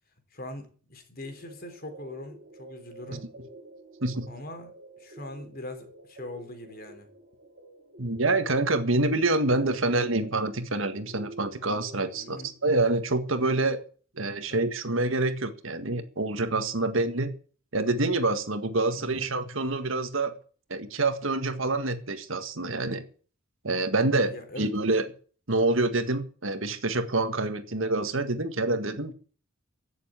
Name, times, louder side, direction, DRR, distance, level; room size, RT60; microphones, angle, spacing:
voice 1, 0.3-3.2 4.3-7.1 12.2-12.5 14.5-14.6 19.0-19.3 24.3-24.7, left 1 dB, 45° left, 6 dB, 3.6 m, -42 dB
sound 1, 1.2-12.5, right 1 dB, 45° right, 3.6 m, -49 dB
voice 2, 8.0-13.8 14.1-17.3 17.7-20.3 20.7-23.0 23.6-25.0 25.5-29.1, right 2 dB, 65° right, 9 dB, 1.7 m, -27 dB
15.5 x 7.1 x 8.9 m, 0.42 s
head